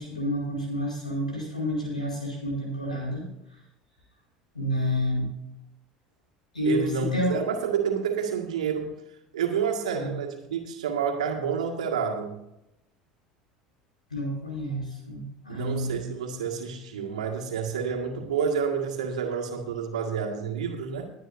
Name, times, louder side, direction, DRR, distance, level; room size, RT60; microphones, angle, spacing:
voice 1, 0.0-3.2 4.5-5.3 6.5-7.3 9.9-10.1 14.1-16.1, equal, 90° left, -1 dB, 5.0 m, -29 dB
voice 2, 6.6-9.0 9.3-12.3 15.5-21.1, right 6 dB, 75° right, 2 dB, 1.9 m, -29 dB
22.0 x 9.3 x 2.7 m, 0.86 s
figure-of-eight pair, 70°, 4 cm